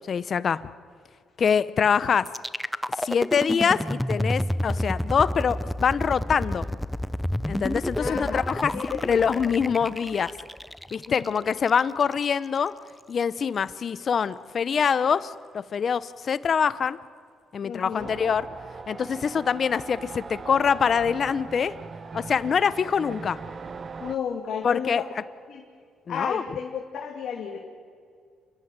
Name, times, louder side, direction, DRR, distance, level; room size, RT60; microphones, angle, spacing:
voice 1, 0.1-0.6 1.4-2.3 3.0-6.6 7.5-10.3 10.9-12.7 13.1-15.3 15.7-17.0 17.5-18.4 18.9-21.7 22.1-23.4 24.6-25.0 26.1-26.4, left 6 dB, 50° left, 16 dB, 0.8 m, -24 dB
sound 1, 2.3-12.2, equal, 5° left, 0.6 m, -30 dB
voice 2, 8.0-8.4 8.7-9.4 11.1-11.5 17.6-18.1 24.0-25.1 25.5-25.6 26.1-27.6, left 7 dB, 70° left, -1 dB, 2.6 m, -33 dB
sound 2, 18.0-24.2, right 4 dB, 40° right, 1.0 m, -40 dB
29.0 x 12.0 x 9.6 m, 2.2 s
cardioid pair, 90°, 0 cm